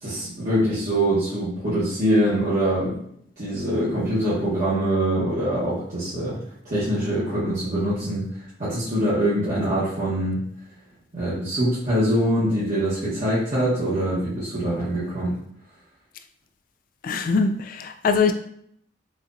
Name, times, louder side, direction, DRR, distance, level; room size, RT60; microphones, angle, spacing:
voice 1, 0.0-3.0 3.4-6.4 6.6-8.2 8.6-10.4 11.1-15.3, right 1 dB, 45° right, -12 dB, 1.1 m, -23 dB
voice 2, 17.0-18.3, left 5 dB, 50° left, 7 dB, 0.3 m, -22 dB
4.2 x 2.5 x 2.5 m, 0.69 s
head